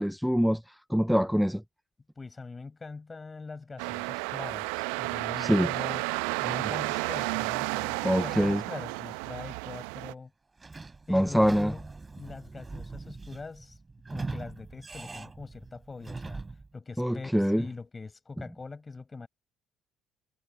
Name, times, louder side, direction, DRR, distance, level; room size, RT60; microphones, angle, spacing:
voice 1, 0.0-1.6 5.4-5.7 8.0-8.6 11.1-11.7 17.0-17.6, equal, ahead, 0.4 m, -25 dB
voice 2, 2.2-6.0 6.4-10.3 11.1-11.9 12.2-13.8 14.1-16.4 16.7-17.3 17.6-19.3, left 4 dB, 25° left, 6.4 m, -42 dB
sound 1, 3.8-10.1, right 33 dB, 70° right, 0.8 m, -32 dB
Sliding door / Squeak, 10.6-16.7, right 3 dB, 20° right, 6.2 m, -41 dB
figure-of-eight pair, 55°, 0 cm